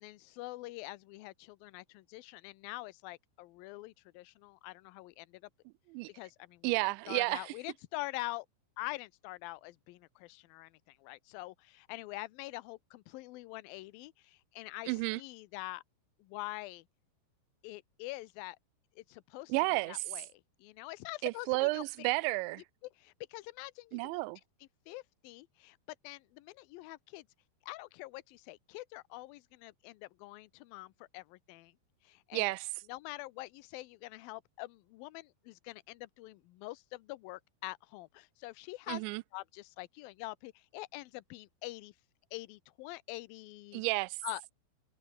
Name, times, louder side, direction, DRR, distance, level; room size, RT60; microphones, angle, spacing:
voice 1, 0.0-5.4 6.2-6.7 7.1-8.5 8.8-15.8 16.2-16.8 17.6-18.6 19.0-22.1 23.0-24.2 24.9-25.8 26.0-27.2 27.6-31.7 32.0-32.5 32.9-39.0 39.3-41.9 42.3-43.8 44.2-44.5, left 20 dB, 90° left, 2.1 m, -45 dB
voice 2, 6.6-7.5 14.9-15.2 19.5-20.0 21.2-22.6 23.9-24.4 32.3-32.7 38.9-39.2 43.7-44.2, right 24 dB, 85° right, 2.8 m, -32 dB
omnidirectional pair, 5.1 m